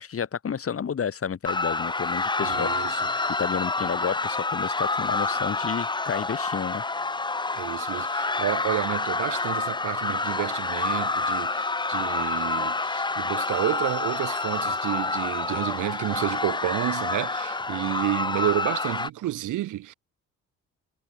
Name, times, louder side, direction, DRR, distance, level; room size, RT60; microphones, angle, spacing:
voice 1, 0.0-2.7 3.4-6.8, left 7 dB, 50° left, 5.3 m, -31 dB
sound 1, 1.4-19.1, left 3 dB, 15° left, 0.9 m, -28 dB
voice 2, 2.4-3.1 7.5-19.9, right 14 dB, 85° right, 4.1 m, -30 dB
cardioid pair, 90°, 30 cm